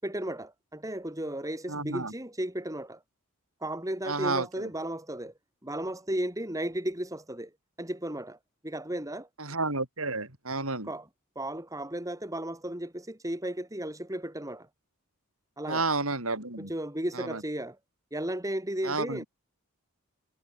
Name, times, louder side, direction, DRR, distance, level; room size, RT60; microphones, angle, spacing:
voice 1, 0.0-3.0 3.6-5.3 5.6-7.5 7.8-8.4 8.6-9.3 10.9-11.1 11.3-14.7 15.6-15.8 16.6-17.8 18.1-19.2, right 1 dB, 15° right, 4.7 m, -34 dB
voice 2, 1.7-2.1 4.1-4.7 9.4-10.9 15.7-16.7 17.1-17.4 18.8-19.3, right 3 dB, 65° right, 7.2 m, -31 dB
head